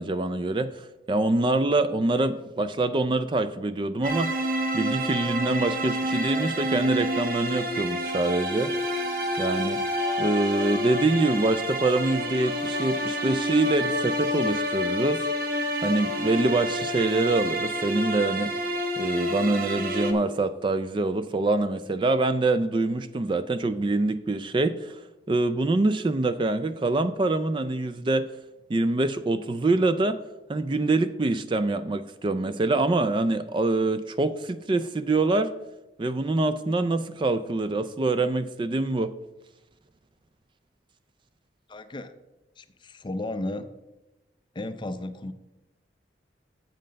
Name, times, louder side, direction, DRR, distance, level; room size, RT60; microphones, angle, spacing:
voice 1, 0.0-4.3 4.7-8.7 9.4-9.8 10.2-15.2 15.8-18.5 19.0-25.0 25.3-28.3 28.7-30.2 30.5-35.5 36.0-39.1, right 2 dB, 25° right, 12 dB, 0.3 m, -25 dB
sound 1, 4.0-20.1, equal, 50° right, 1.0 m, -28 dB
voice 2, 41.7-42.1 42.6-43.7 44.5-45.3, left 2 dB, 25° left, 10 dB, 0.5 m, -34 dB
7.6 x 7.5 x 5.1 m, 1.0 s
head